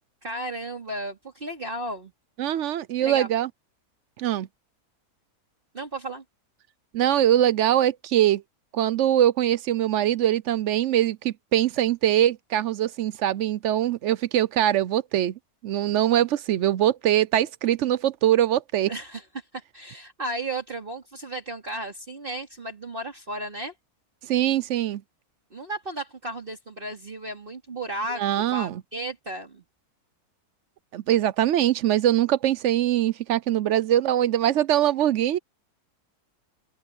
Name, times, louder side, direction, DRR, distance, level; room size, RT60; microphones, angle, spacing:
voice 1, 0.2-2.1 3.0-3.3 5.7-6.2 18.9-23.7 25.5-29.6, right 2 dB, 35° right, 2.9 m, -34 dB
voice 2, 2.4-3.5 4.2-4.5 6.9-8.4 8.7-15.3 15.6-18.9 24.2-25.0 28.2-28.8 30.9-35.4, right 12 dB, 65° right, 0.7 m, -22 dB
omnidirectional pair, 1.6 m